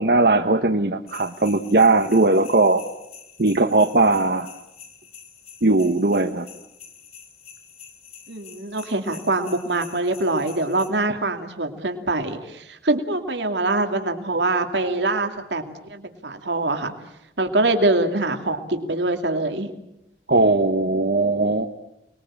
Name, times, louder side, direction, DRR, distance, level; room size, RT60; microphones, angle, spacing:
voice 1, 0.0-2.8 3.4-4.5 5.6-6.5 20.3-21.7, right 2 dB, 60° right, 5 dB, 1.1 m, -19 dB
sound 1, 1.1-10.9, left 7 dB, 40° left, 4.6 m, -46 dB
voice 2, 8.3-16.9 17.4-19.7, right 2 dB, 85° right, 5 dB, 2.6 m, -24 dB
29.5 x 21.5 x 8.8 m, 0.84 s
head